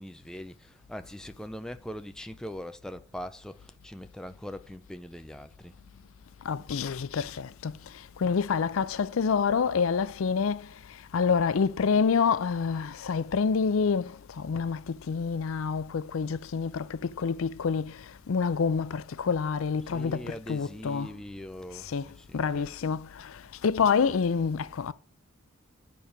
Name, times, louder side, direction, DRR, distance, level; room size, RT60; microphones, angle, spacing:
voice 1, 0.0-5.8 19.8-22.7, equal, 5° left, 0.3 m, -42 dB
voice 2, 6.5-7.7 8.2-10.6 11.1-14.1 14.4-17.9 18.3-21.1 21.9-22.0 22.3-23.1 23.6-24.9, left 5 dB, 70° left, 0.4 m, -27 dB
8.6 x 4.6 x 5.2 m
head